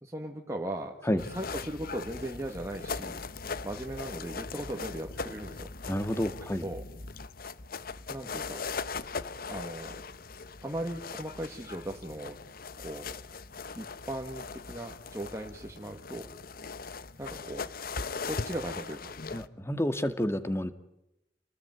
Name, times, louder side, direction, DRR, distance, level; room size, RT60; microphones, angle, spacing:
voice 1, 0.0-3.2 3.6-5.7 6.6-6.8 8.1-8.6 9.5-10.0 10.6-12.4 12.8-13.1 13.7-16.3 17.2-17.7 18.3-19.1, right 1 dB, 15° right, 1 dB, 2.3 m, -38 dB
sound 1, 1.2-19.5, left 4 dB, 60° left, 1.1 m, -40 dB
voice 2, 5.9-6.7 19.3-20.7, equal, 15° left, 10 dB, 1.9 m, -29 dB
29.0 x 20.5 x 9.6 m, 0.90 s
head